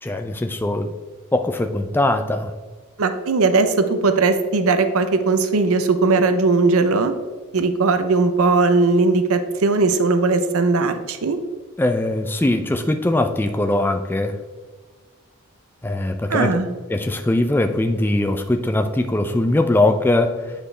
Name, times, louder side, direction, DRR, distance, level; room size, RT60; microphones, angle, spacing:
voice 1, 0.0-0.9 1.3-2.5 11.8-14.4 15.8-16.6 16.9-20.5, left 1 dB, 10° left, 6 dB, 0.3 m, -21 dB
voice 2, 3.0-7.1 7.5-11.4 16.3-16.7, right 3 dB, 70° right, 9 dB, 0.6 m, -18 dB
8.5 x 5.0 x 3.2 m, 1.4 s
head